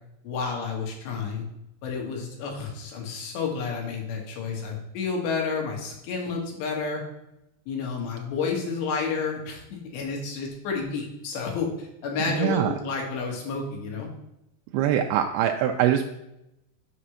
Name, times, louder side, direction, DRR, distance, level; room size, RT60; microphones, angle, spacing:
voice 1, 0.2-1.4 1.8-7.0 7.7-9.6 9.9-14.1, left 5 dB, 85° left, 0 dB, 3.7 m, -30 dB
voice 2, 12.2-12.7 14.7-16.0, right 10 dB, 85° right, 4 dB, 2.3 m, -23 dB
7.6 x 4.9 x 5.7 m, 0.86 s
omnidirectional pair, 4.8 m